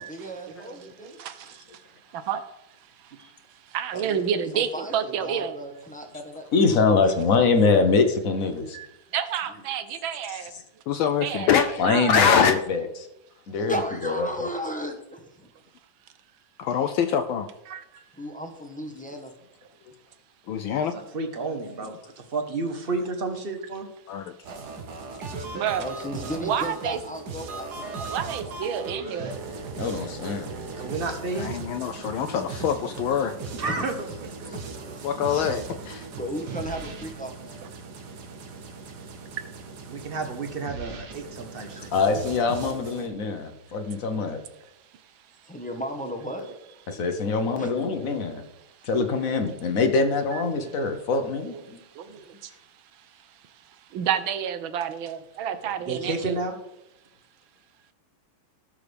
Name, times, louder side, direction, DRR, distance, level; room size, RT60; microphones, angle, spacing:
voice 1, 0.0-1.2 3.2-3.3 3.9-6.5 7.0-7.6 9.5-9.6 13.7-15.5 18.1-19.3 21.4-21.9 25.8-28.1 28.4-28.6 33.6-33.9 34.5-34.6 35.3-35.4 36.2-37.7 41.6-42.0 45.4-46.5 47.6-47.7, equal, 10° left, 3 dB, 0.5 m, -36 dB
voice 2, 0.5-1.3 2.1-2.4 3.7-5.5 8.7-8.9 9.1-10.5 11.2-12.3 17.7-17.8 25.5-25.8 26.4-27.0 28.1-29.3 33.4-33.5 50.3-50.4 51.5-51.6 52.0-52.2 53.9-56.4, right 8 dB, 70° right, 11 dB, 1.5 m, -29 dB
voice 3, 6.5-8.8 11.8-12.9 13.5-13.7 14.0-14.5 29.8-30.5 41.9-44.4 46.9-48.4 48.8-51.8, left 4 dB, 50° left, 7 dB, 1.1 m, -24 dB
voice 4, 10.9-11.8 12.1-12.5 16.6-17.5 20.5-21.0 24.1-24.3 31.3-33.3 34.4-34.6 35.0-36.1, left 7 dB, 75° left, 6 dB, 1.3 m, -24 dB
voice 5, 20.9-23.9 30.8-31.5 33.6-34.1 34.4-34.5 39.9-41.9 55.9-56.5, right 3 dB, 35° right, 6 dB, 0.9 m, -31 dB
sound 1, 24.4-43.1, right 4 dB, 55° right, 1.4 m, -38 dB
17.0 x 6.5 x 3.4 m, 0.88 s
omnidirectional pair, 2.4 m